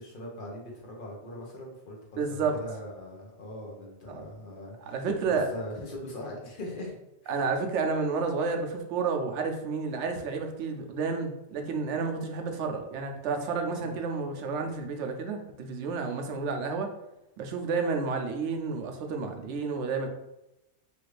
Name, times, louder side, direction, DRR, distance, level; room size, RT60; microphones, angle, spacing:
voice 1, 0.0-5.0 5.3-6.9 7.2-7.4 13.8-14.0, left 1 dB, 50° left, -2 dB, 1.0 m, -41 dB
voice 2, 2.2-2.6 4.1-4.2 4.8-5.5 7.3-16.9 17.4-20.1, right 4 dB, 85° right, 4 dB, 0.9 m, -30 dB
3.1 x 2.5 x 3.2 m, 0.91 s
omnidirectional pair, 1.2 m